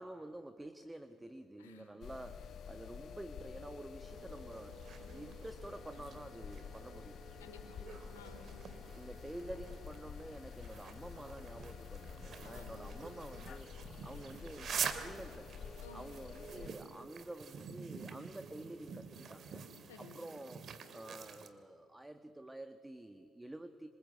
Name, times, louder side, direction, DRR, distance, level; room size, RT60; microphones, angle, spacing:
voice 1, 0.0-4.8 5.1-7.2 8.9-15.5 15.9-19.7 20.0-20.6 20.9-23.9, right 1 dB, 15° right, 9 dB, 1.5 m, -49 dB
voice 2, 1.6-2.1 5.0-5.4 7.4-8.6 12.4-13.0 14.1-14.3 15.8-16.2 19.9-20.3, left 4 dB, 85° left, 6 dB, 3.4 m, -56 dB
sound 1, 2.0-16.7, left 7 dB, 55° left, 1.0 m, -50 dB
sound 2, 4.0-21.5, right 6 dB, 55° right, 2.3 m, -47 dB
26.5 x 26.0 x 8.2 m, 2.6 s
hypercardioid pair, 50°, 0 cm